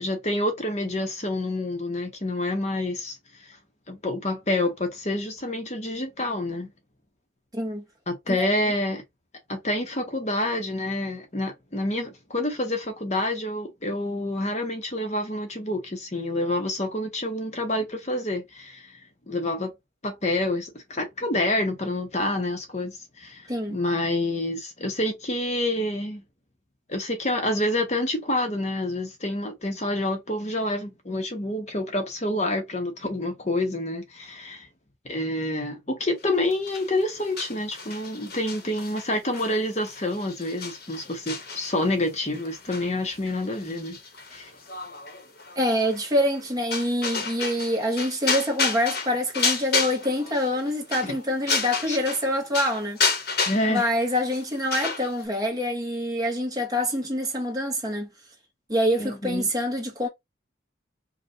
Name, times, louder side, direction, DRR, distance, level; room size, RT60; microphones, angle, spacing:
voice 1, 0.0-3.6 3.9-6.7 8.1-9.0 9.5-19.7 20.0-26.2 26.9-34.7 35.0-44.0 44.3-44.5 51.0-51.2 51.9-52.0 53.5-53.9 59.0-59.5, left 1 dB, 35° left, 1.0 m, -28 dB
voice 2, 7.5-7.8 8.3-8.5 23.5-23.8 45.5-53.0 53.7-58.1 58.7-60.1, equal, 20° right, 1.3 m, -26 dB
sound 1, 36.5-52.3 52.5-55.2, left 4 dB, 50° left, 1.2 m, -31 dB
5.3 x 2.5 x 2.7 m
head